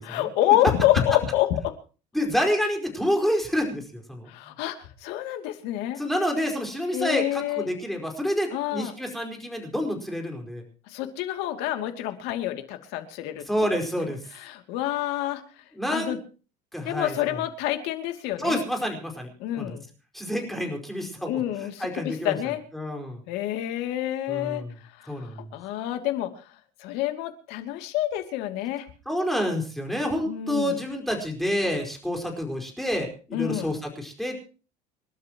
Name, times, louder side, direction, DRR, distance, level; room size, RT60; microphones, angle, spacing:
voice 1, 0.0-1.7 4.3-6.0 6.9-7.7 8.5-8.9 10.9-13.4 14.3-15.4 15.9-16.2 16.8-18.6 19.4-19.8 21.3-22.6 23.3-24.6 25.0-26.3 26.8-28.9 30.3-30.8 33.3-33.8, left 13 dB, 75° left, 6 dB, 2.8 m, -27 dB
voice 2, 2.1-4.3 6.0-10.6 13.5-14.2 15.7-16.2 16.7-17.4 18.4-19.3 19.6-19.8 20.1-22.4 22.7-23.2 24.3-24.7 25.1-25.4 29.0-34.5, equal, ahead, 2 dB, 4.9 m, -28 dB
28.5 x 12.5 x 3.1 m, 0.36 s
cardioid pair, 145°, 17 cm